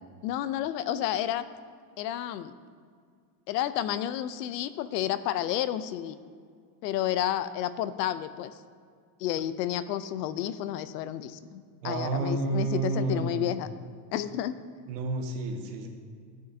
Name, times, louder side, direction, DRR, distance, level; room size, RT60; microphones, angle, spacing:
voice 1, 0.2-1.5 2.0-2.5 3.5-6.2 6.8-8.5 9.2-13.7 14.1-14.6, left 12 dB, 80° left, 14 dB, 0.6 m, -31 dB
voice 2, 11.8-13.5 14.9-15.9, right 3 dB, 75° right, 2 dB, 1.5 m, -30 dB
12.0 x 6.5 x 2.7 m, 2.1 s
supercardioid pair, 140°, 49 cm